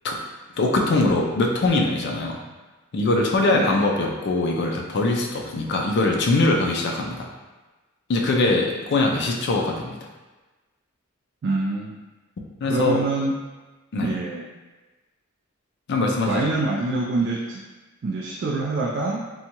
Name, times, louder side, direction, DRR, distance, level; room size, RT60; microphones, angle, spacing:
voice 1, 0.6-2.4 2.9-7.3 8.1-10.0 12.6-13.0 13.9-14.1 15.9-16.4, left 2 dB, 55° left, 0 dB, 0.4 m, -22 dB
voice 2, 3.5-3.8 11.4-12.0 12.7-13.4 14.0-14.5 16.2-17.6 18.0-19.3, right 3 dB, 55° right, -3 dB, 0.3 m, -25 dB
2.7 x 2.2 x 2.8 m, 1.2 s
head